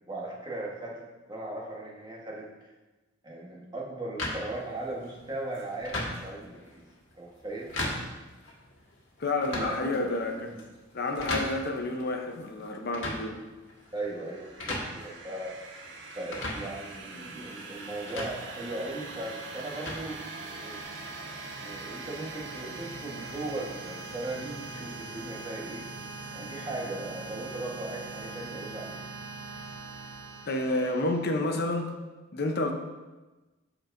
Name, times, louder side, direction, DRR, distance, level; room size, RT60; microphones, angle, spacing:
voice 1, 0.1-1.0 1.3-2.7 3.2-6.8 7.2-7.7 9.6-10.6 13.9-15.5 16.1-20.8 21.6-25.9 26.3-29.0 30.8-30.9 31.4-31.6 32.0-32.1, right 2 dB, 20° right, -3 dB, 1.2 m, -38 dB
sound 1, 4.2-20.8, left 1 dB, 75° left, 1.6 m, -39 dB
voice 2, 9.2-10.5 10.9-13.4 30.5-31.9 32.3-32.7, left 2 dB, 55° left, 4 dB, 0.7 m, -29 dB
sound 2, 13.9-31.5, right 3 dB, 70° right, 0.8 m, -42 dB
12.5 x 4.5 x 2.6 m, 1.2 s
head